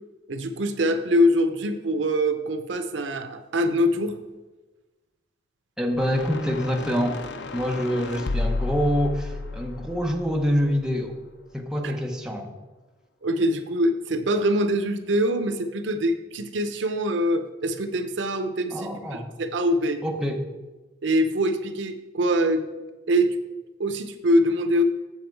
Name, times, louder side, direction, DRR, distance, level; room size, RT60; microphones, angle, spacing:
voice 1, 0.3-4.2 11.8-11.9 13.2-20.0 21.0-22.6 23.1-23.4 23.8-24.8, equal, 80° right, 8 dB, 0.7 m, -24 dB
voice 2, 5.8-7.2 7.5-11.2 11.5-12.5 18.7-19.3 20.0-20.4, equal, 5° right, 1 dB, 0.8 m, -26 dB
sound 1, 5.9-11.2, left 3 dB, 70° left, 0.6 m, -33 dB
7.3 x 7.2 x 4.5 m, 1.2 s
head